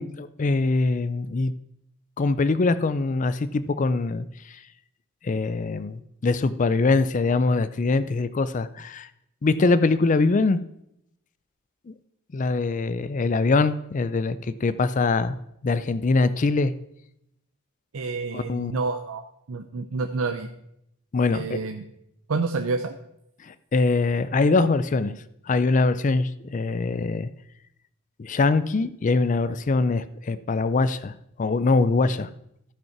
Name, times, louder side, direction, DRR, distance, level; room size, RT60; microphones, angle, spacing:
voice 1, 0.0-1.5 2.2-4.6 5.2-9.1 9.4-10.6 11.9-12.0 12.3-15.4 15.6-16.7 18.3-18.7 21.1-21.6 23.4-25.1 25.5-27.3 28.2-32.3, left 3 dB, 35° left, 14 dB, 0.4 m, -23 dB
voice 2, 17.9-19.2 19.5-20.5 21.3-21.8 22.3-22.9, right 4 dB, 70° right, 6 dB, 0.6 m, -28 dB
14.0 x 5.4 x 5.9 m, 0.78 s
head